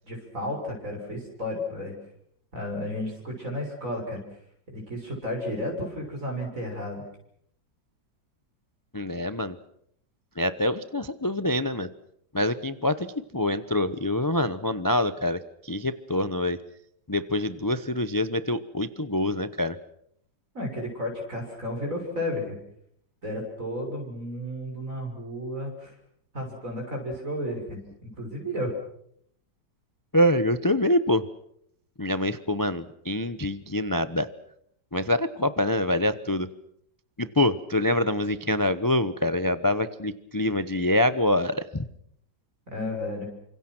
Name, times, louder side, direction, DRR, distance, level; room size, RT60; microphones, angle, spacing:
voice 1, 0.0-1.9 2.5-4.2 4.7-7.0 20.5-22.6 23.2-25.9 26.3-28.7 42.7-43.3, left 1 dB, 45° right, 0 dB, 6.9 m, -33 dB
voice 2, 8.9-9.6 10.4-11.9 12.3-16.6 17.1-19.8 30.1-31.2 32.0-34.3 34.9-36.5 37.2-41.9, left 1 dB, 20° left, 12 dB, 0.5 m, -25 dB
29.5 x 26.0 x 6.2 m, 0.71 s
omnidirectional pair, 2.0 m